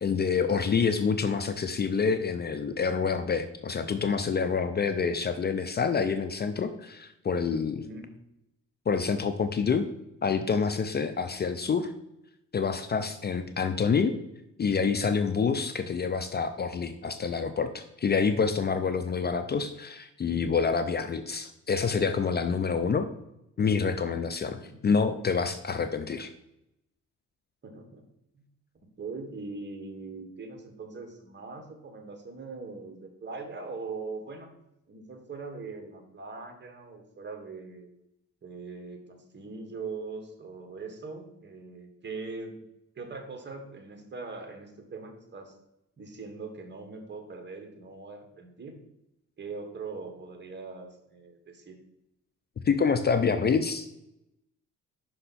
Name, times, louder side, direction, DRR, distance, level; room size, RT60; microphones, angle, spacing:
voice 1, 0.0-7.8 8.9-9.9 10.2-11.9 12.5-14.1 14.6-23.1 23.6-26.3 52.6-54.0, left 5 dB, 35° left, 9 dB, 0.5 m, -27 dB
voice 2, 7.8-8.1 11.4-11.6 24.6-24.8 27.6-28.0 29.0-34.5 34.9-37.9 38.4-42.6 42.9-45.5 46.0-48.8 49.4-51.8, right 4 dB, 35° right, 5 dB, 1.5 m, -41 dB
5.5 x 5.5 x 4.1 m, 0.85 s
cardioid pair, 90°, 30 cm